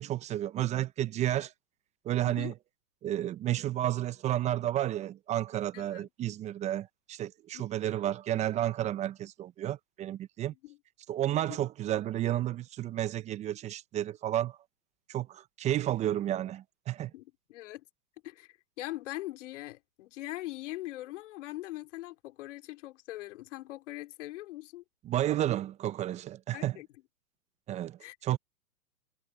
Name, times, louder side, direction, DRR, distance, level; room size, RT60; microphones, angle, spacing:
voice 1, 0.0-1.5 2.0-2.5 3.0-10.5 11.1-14.6 15.1-17.1 25.1-26.8 27.7-28.4, right 12 dB, 15° right, 0.8 m, -31 dB
voice 2, 2.2-2.5 5.7-6.1 7.5-7.7 10.6-10.8 11.3-11.6 17.1-17.8 18.2-24.8 26.5-26.9 28.0-28.2, left 17 dB, 45° left, 2.7 m, -42 dB
hypercardioid pair, 130°, 48 cm